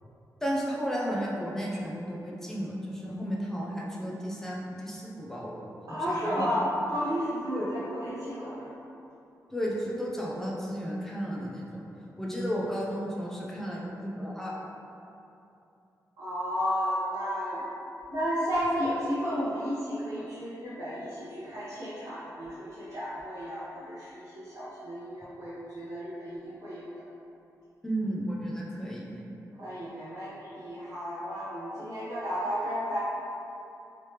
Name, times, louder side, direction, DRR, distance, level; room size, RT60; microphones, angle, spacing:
voice 1, 0.4-5.6 5.9-6.5 7.5-7.6 9.5-11.8 12.2-14.6 27.8-29.2, equal, 5° left, -4 dB, 0.4 m, -33 dB
voice 2, 5.9-8.7 16.2-17.7 18.1-26.9 29.6-33.0, equal, 60° right, -12 dB, 0.8 m, -32 dB
3.2 x 3.2 x 2.9 m, 2.8 s
wide cardioid pair, 175°, 6 cm